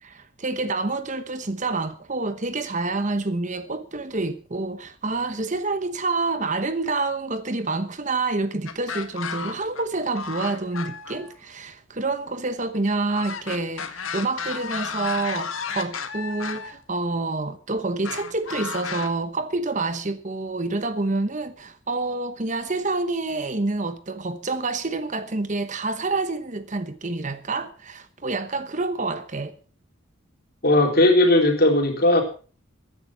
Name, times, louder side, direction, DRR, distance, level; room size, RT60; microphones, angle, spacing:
voice 1, 0.0-29.5, right 3 dB, 35° right, 1.0 m, -28 dB
sound 1, 8.7-9.8 10.1-11.3 13.1-16.7 18.0-19.1, left 6 dB, 75° left, 1.7 m, -33 dB
voice 2, 30.6-32.2, left 1 dB, 45° left, 3.9 m, -17 dB
15.0 x 10.0 x 6.0 m
head